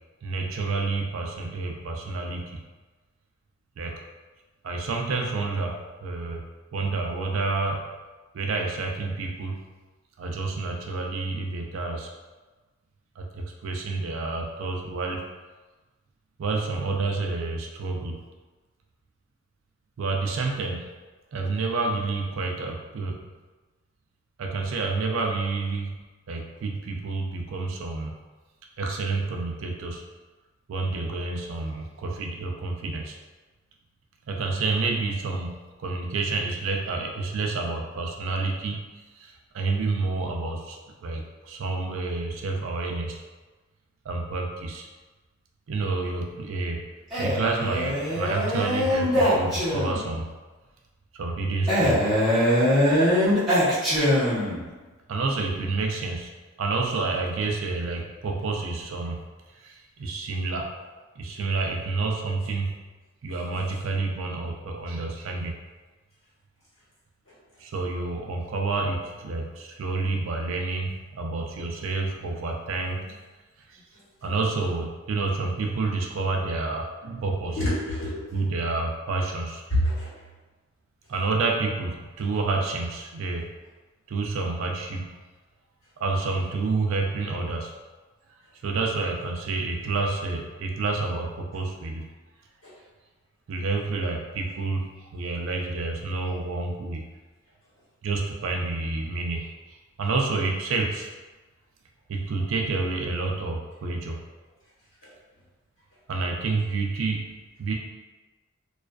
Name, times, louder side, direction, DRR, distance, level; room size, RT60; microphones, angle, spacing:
voice 1, 0.2-2.6 3.8-4.0 4.6-6.4 6.7-7.9 8.3-9.6 10.2-12.1 13.2-15.2 16.4-18.2 20.0-20.9 21.3-23.2 24.4-26.0 26.3-28.2 28.8-30.0 30.7-33.2 34.3-38.9 39.2-43.2 44.0-44.9 45.7-46.8 47.2-50.3 51.1-52.0 55.1-56.3 56.6-59.2 59.6-60.7 61.2-62.7 63.2-65.5 67.6-73.1 73.7-73.8 74.2-77.6 78.3-79.6 81.1-83.5 84.1-85.1 86.0-87.7 88.6-92.1 93.5-97.0 98.0-101.1 102.1-104.2 106.1-107.3 107.6-107.7, right 3 dB, 75° right, 1 dB, 0.4 m, -29 dB
Male speech man speaking, 47.1-50.1 51.7-54.7, equal, ahead, 0.9 m, -22 dB
voice 2, 77.5-78.3 79.7-80.2 91.5-91.6 92.6-92.8 105.0-105.1, equal, 70° left, -10 dB, 1.3 m, -28 dB
2.4 x 2.3 x 2.2 m, 1.3 s
head